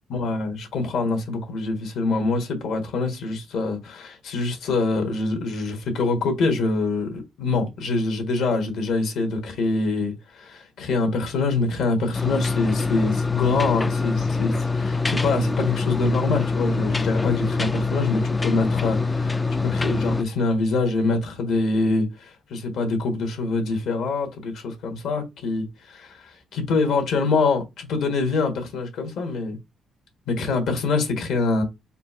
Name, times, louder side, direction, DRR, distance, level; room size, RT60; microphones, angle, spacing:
voice 1, 0.1-29.6 30.3-31.6, left 3 dB, 75° left, 1.5 m, -25 dB
sound 1, 12.1-20.2, left 3 dB, 20° left, 0.3 m, -24 dB
4.3 x 2.4 x 4.4 m
cardioid pair, 90°, 0 cm